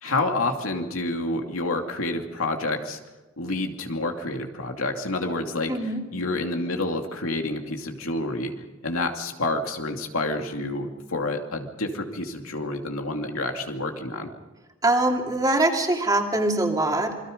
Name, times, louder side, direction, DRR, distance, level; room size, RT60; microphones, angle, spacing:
voice 1, 0.0-3.0 3.4-5.7 6.1-8.5 8.8-14.3, left 2 dB, 90° left, 3 dB, 2.6 m, -28 dB
voice 2, 5.7-6.0 14.8-17.2, right 2 dB, 20° right, 2 dB, 2.7 m, -23 dB
27.5 x 22.0 x 5.3 m, 1.1 s
head